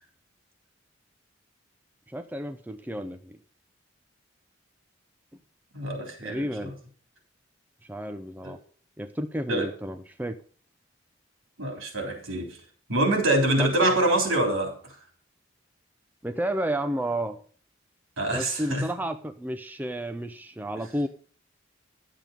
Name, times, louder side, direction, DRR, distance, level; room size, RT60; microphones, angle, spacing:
voice 1, 2.1-3.4 6.2-6.7 7.8-8.6 9.0-10.3 13.6-13.7 16.2-17.4 18.3-21.1, right 1 dB, 10° right, 0.5 m, -31 dB
voice 2, 5.7-6.7 8.4-8.6 9.5-9.7 11.6-12.6 12.9-15.0 18.2-18.8, right 1 dB, 85° right, 3.6 m, -25 dB
10.5 x 7.6 x 5.2 m
head